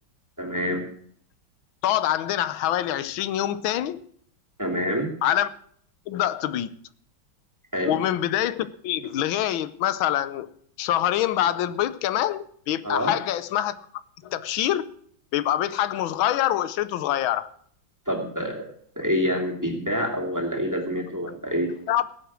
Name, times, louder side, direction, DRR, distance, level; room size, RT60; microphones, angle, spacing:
voice 1, 0.4-0.8 4.6-5.1 7.7-8.0 12.8-13.1 18.1-18.6 19.0-21.7, equal, 10° right, 2.5 m, -27 dB
voice 2, 1.8-4.0 5.2-5.5 6.1-6.7 7.9-10.5 10.8-13.7 14.2-14.9 15.3-17.5 21.9-22.1, left 12 dB, 85° left, 1.5 m, -25 dB
17.5 x 8.0 x 6.2 m
omnidirectional pair, 2.1 m